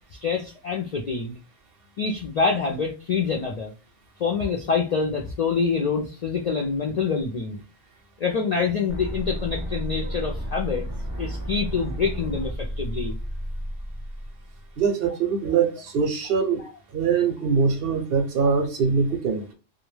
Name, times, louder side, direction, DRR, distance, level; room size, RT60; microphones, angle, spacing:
voice 1, 0.1-1.4 2.0-3.7 4.2-7.6 8.2-10.9 11.2-13.2, left 5 dB, 60° left, 0.4 m, -26 dB
sound 1, 8.9-14.9, equal, 25° right, 0.4 m, -32 dB
voice 2, 14.8-16.6 16.9-19.5, right 5 dB, 60° right, 0.7 m, -23 dB
2.2 x 2.1 x 3.1 m
omnidirectional pair, 1.2 m